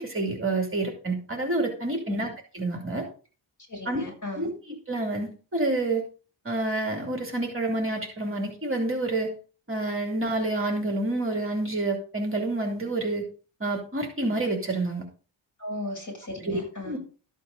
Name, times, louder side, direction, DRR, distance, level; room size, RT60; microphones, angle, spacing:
voice 1, 0.0-3.0 3.9-4.0 4.3-6.0 6.4-9.3 9.7-13.3 13.6-15.0 16.4-17.0, right 2 dB, 25° right, 2 dB, 2.6 m, -28 dB
voice 2, 3.7-4.5 15.6-17.0, left 2 dB, 40° left, 0 dB, 7.7 m, -36 dB
13.5 x 8.4 x 3.8 m, 0.37 s
wide cardioid pair, 175°, 47 cm